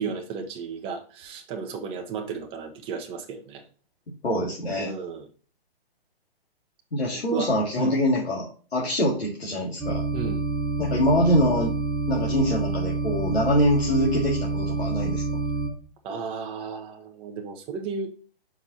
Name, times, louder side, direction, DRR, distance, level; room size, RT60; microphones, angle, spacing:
voice 1, 0.0-3.6 4.8-5.3 7.3-8.0 10.1-10.4 16.0-18.1, right 5 dB, 20° right, 0.9 m, -34 dB
voice 2, 4.2-4.9 6.9-10.0 10.8-11.8 12.1-15.2, equal, 90° left, 2.4 m, -24 dB
sound 1, 9.8-15.7, right 3 dB, ahead, 0.3 m, -27 dB
5.9 x 4.4 x 4.2 m
hypercardioid pair, 145°, 31 cm